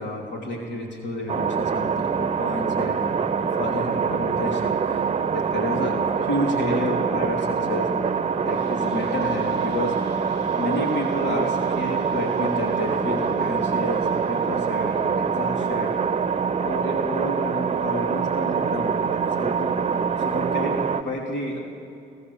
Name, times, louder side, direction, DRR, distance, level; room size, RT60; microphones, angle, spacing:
voice 1, 0.0-7.9 8.4-16.0 16.6-19.7 20.2-21.6, left 1 dB, 65° left, 0 dB, 3.1 m, -30 dB
sound 1, 1.3-21.0, right 6 dB, 30° right, 0.9 m, -25 dB
26.5 x 14.5 x 7.1 m, 2.5 s
cardioid pair, 90°, 20 cm